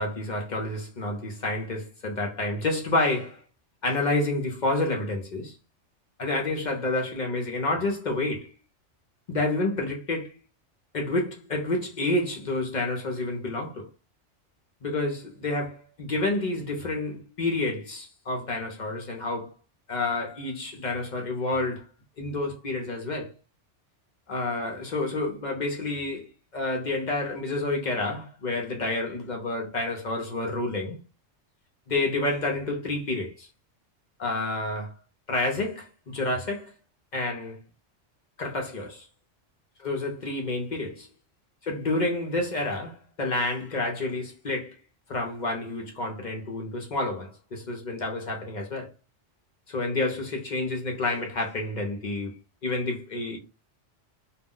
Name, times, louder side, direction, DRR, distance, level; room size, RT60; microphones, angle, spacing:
voice 1, 0.0-3.4 3.8-5.6 6.2-8.5 9.3-10.4 10.9-13.9 14.8-19.5 19.9-21.9 22.2-23.3 24.3-31.0 31.9-33.5 34.2-34.9 35.3-36.7 37.1-37.6 38.4-39.1 39.8-41.1 41.6-44.8 45.1-48.9 49.7-52.3 52.6-53.4, left 2 dB, 50° left, 0.6 m, -29 dB
2.2 x 2.0 x 3.6 m
omnidirectional pair, 1.2 m